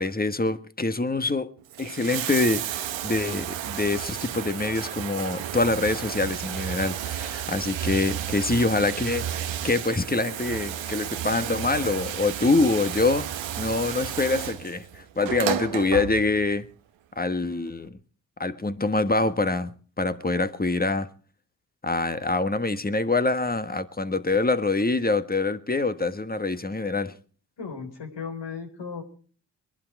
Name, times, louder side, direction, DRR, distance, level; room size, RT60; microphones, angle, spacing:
voice 1, 0.0-1.5 1.8-16.7 17.2-18.0 18.4-21.1 21.8-27.1, left 3 dB, 20° left, 1.4 m, -25 dB
Bathtub (filling or washing), 1.6-16.6 17.7-17.8, right 10 dB, 85° right, 1.2 m, -32 dB
voice 2, 27.6-29.0, left 5 dB, 70° left, 4.2 m, -36 dB
21.5 x 11.5 x 4.8 m
supercardioid pair, 50°, 44 cm